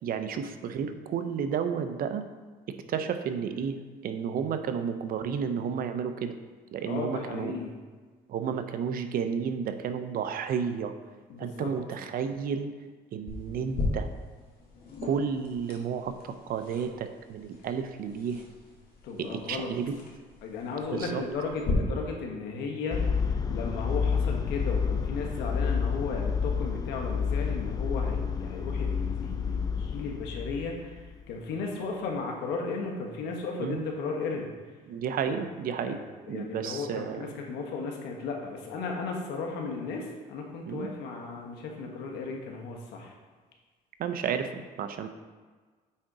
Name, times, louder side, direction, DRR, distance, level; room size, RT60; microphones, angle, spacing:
voice 1, 0.0-2.3 2.9-3.8 4.0-6.3 6.7-7.5 8.3-10.9 11.4-12.7 13.1-14.1 15.0-18.4 19.2-19.9 20.9-21.2 33.6-33.8 34.9-36.0 36.3-37.3 40.7-40.9 44.0-45.1, right 7 dB, 60° right, 8 dB, 0.7 m, -32 dB
voice 2, 6.9-7.7 11.3-11.7 19.0-19.7 20.4-23.1 23.5-31.0 31.3-34.5 35.8-43.1, left 4 dB, 85° left, 1 dB, 1.4 m, -35 dB
sound 1, 13.3-21.7, left 3 dB, 60° left, 2.0 m, -39 dB
sound 2, 22.9-31.2, left 6 dB, 20° left, 0.5 m, -29 dB
8.5 x 3.8 x 4.8 m, 1.4 s
cardioid pair, 110°, 17 cm